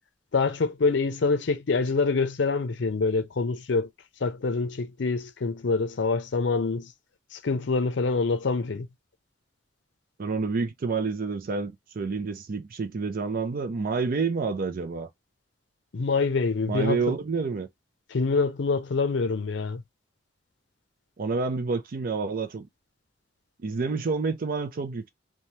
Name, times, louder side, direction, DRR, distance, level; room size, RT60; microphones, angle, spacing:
voice 1, 0.3-3.9 4.2-6.9 7.3-8.9 15.9-17.2 18.1-19.8, left 4 dB, 70° left, 0.5 m, -26 dB
voice 2, 10.2-15.1 16.7-17.7 21.2-22.7 23.6-25.1, right 4 dB, 50° right, 0.4 m, -28 dB
3.1 x 2.2 x 2.7 m
head